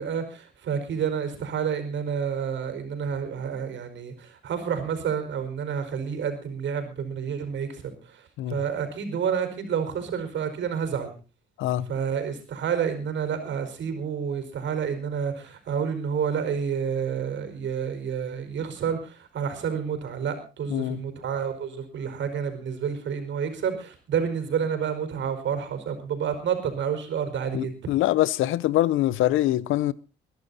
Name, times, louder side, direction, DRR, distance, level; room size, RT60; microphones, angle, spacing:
voice 1, 0.0-11.1 11.9-27.8, right 7 dB, 70° right, 4.9 m, -29 dB
voice 2, 20.7-21.0 27.5-29.9, left 14 dB, 90° left, 0.8 m, -24 dB
22.0 x 11.5 x 4.1 m
cardioid pair, 90°, 20 cm